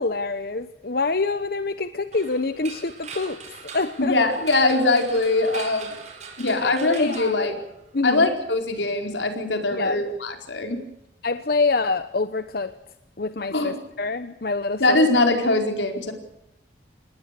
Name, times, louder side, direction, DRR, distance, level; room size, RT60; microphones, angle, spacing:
voice 1, 0.0-4.2 6.4-7.3 7.9-8.3 9.7-10.0 11.2-12.8 13.2-15.0, left 3 dB, 55° left, 12 dB, 0.9 m, -26 dB
sound 1, 2.1-8.1, right 5 dB, 40° right, 4.6 m, -41 dB
voice 2, 4.0-5.9 6.4-7.5 8.0-10.8 13.5-13.7 14.8-16.1, left 2 dB, 80° left, 4 dB, 4.6 m, -22 dB
27.5 x 20.0 x 6.8 m, 0.84 s
head